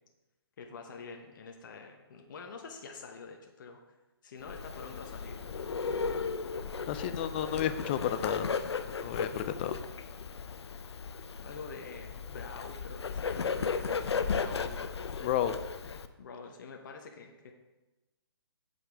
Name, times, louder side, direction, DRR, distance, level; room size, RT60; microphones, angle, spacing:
voice 1, 0.6-3.8 4.2-5.4 11.4-13.7 14.3-14.9 16.2-17.5, left 4 dB, 50° left, 3 dB, 0.9 m, -46 dB
Bird, 4.4-16.1, left 5 dB, 80° left, 0.6 m, -35 dB
voice 2, 6.9-8.5 8.9-9.7 15.2-15.5, left 10 dB, 25° left, 11 dB, 0.4 m, -32 dB
9.0 x 6.9 x 3.4 m, 1.1 s
hypercardioid pair, 150°, 14 cm